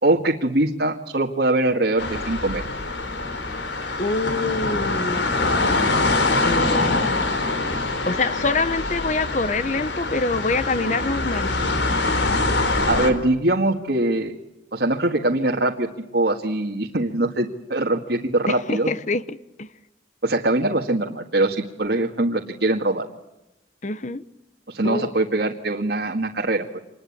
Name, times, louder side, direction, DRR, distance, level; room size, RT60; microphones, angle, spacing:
voice 1, 0.0-2.6 12.9-14.4 14.7-18.9 20.2-23.1 24.7-26.8, right 2 dB, 65° right, 1.9 m, -22 dB
sound 1, 2.0-13.1, left 2 dB, 85° left, 4.0 m, -24 dB
voice 2, 4.0-5.4 6.4-7.1 8.1-11.5 18.5-19.7 23.8-24.2 24.8-25.3, left 3 dB, 40° left, 1.0 m, -25 dB
26.5 x 21.0 x 8.6 m
head